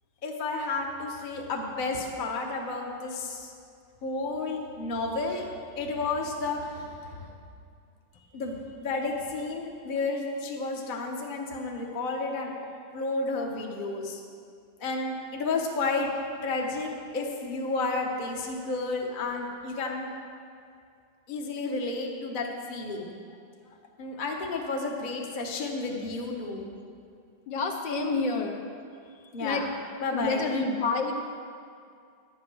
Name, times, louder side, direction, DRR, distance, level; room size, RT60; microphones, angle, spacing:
voice 1, 0.2-3.5 4.0-5.5 5.8-7.3 8.3-12.5 12.9-14.2 14.8-16.1 16.4-20.1 21.3-23.1 24.0-26.7 29.3-29.7 30.0-30.5, left 3 dB, 30° left, 0 dB, 0.9 m, -31 dB
voice 2, 27.5-28.6 29.4-29.6 30.1-31.1, left 3 dB, 65° left, 3 dB, 1.5 m, -28 dB
11.0 x 8.8 x 6.2 m, 2.3 s
omnidirectional pair, 2.2 m